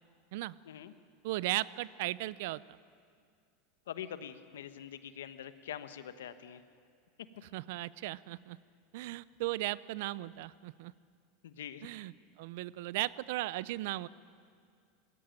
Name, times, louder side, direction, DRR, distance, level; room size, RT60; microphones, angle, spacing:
voice 1, 1.2-2.8 7.5-8.6 8.9-10.9 11.8-14.1, right 17 dB, 70° right, 19 dB, 0.5 m, -36 dB
voice 2, 3.9-6.6 11.4-11.9, left 9 dB, 85° left, 11 dB, 1.1 m, -44 dB
19.5 x 16.0 x 9.0 m, 2.2 s
supercardioid pair, 110°, 0 cm